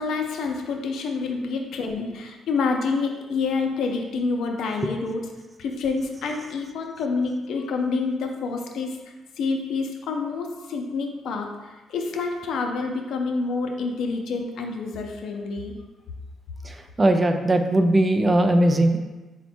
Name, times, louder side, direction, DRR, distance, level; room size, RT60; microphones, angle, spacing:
voice 1, 0.0-5.2 5.6-9.0 9.4-15.8, left 4 dB, 75° left, 3 dB, 0.5 m, -28 dB
voice 2, 16.6-19.0, right 1 dB, 25° right, 6 dB, 0.4 m, -19 dB
4.3 x 2.2 x 4.3 m, 1.1 s
cardioid pair, 90°, 0 cm